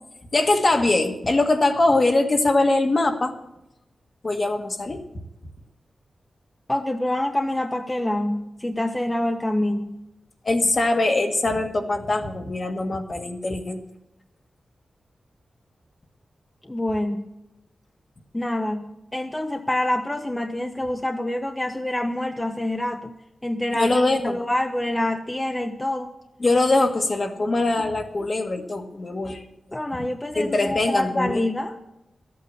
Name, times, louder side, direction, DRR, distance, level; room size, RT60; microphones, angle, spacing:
voice 1, 0.3-3.3 4.2-5.0 10.4-13.8 23.7-24.4 26.4-29.4 30.3-31.4, left 2 dB, 45° left, 5 dB, 1.5 m, -22 dB
voice 2, 6.7-10.0 16.7-17.3 18.3-23.1 23.4-24.0 24.2-26.1 29.7-31.8, left 1 dB, 15° left, 5 dB, 0.8 m, -26 dB
13.0 x 8.5 x 8.1 m, 0.91 s
wide cardioid pair, 80°, 0 cm